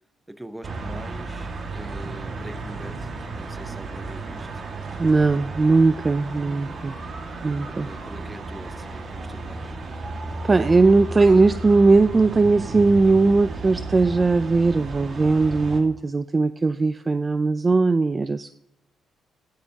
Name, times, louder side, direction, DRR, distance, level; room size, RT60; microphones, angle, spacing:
voice 1, 0.3-4.6 7.6-9.8, right 1 dB, 10° right, 12 dB, 0.9 m, -43 dB
sound 1, 0.6-15.8, right 3 dB, 50° right, 1.9 m, -34 dB
voice 2, 5.0-6.9 7.4-7.9 10.4-18.5, right 3 dB, 25° right, 13 dB, 0.4 m, -19 dB
16.0 x 14.0 x 2.9 m, 0.86 s
cardioid pair, 90°, 0 cm